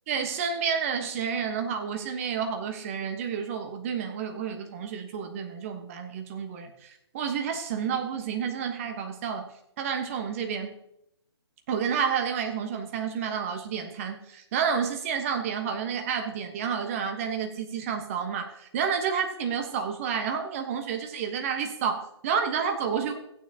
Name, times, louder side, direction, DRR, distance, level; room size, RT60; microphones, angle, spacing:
voice 1, 0.1-9.5 9.8-10.8 11.7-23.2, right 7 dB, 30° right, 5 dB, 1.3 m, -30 dB
15.5 x 9.3 x 2.9 m, 0.78 s
figure-of-eight pair, 140°, 15 cm